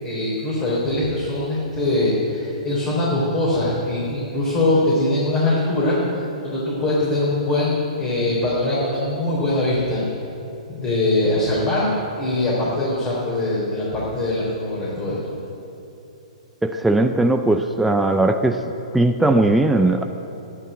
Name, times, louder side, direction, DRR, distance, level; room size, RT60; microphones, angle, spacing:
voice 1, 0.0-10.1 10.7-15.2, left 2 dB, 25° left, -6 dB, 3.9 m, -22 dB
voice 2, 16.6-18.6 18.9-20.0, right 2 dB, 5° right, 5 dB, 0.5 m, -18 dB
12.0 x 11.0 x 9.1 m, 2.9 s
hypercardioid pair, 140°, 4 cm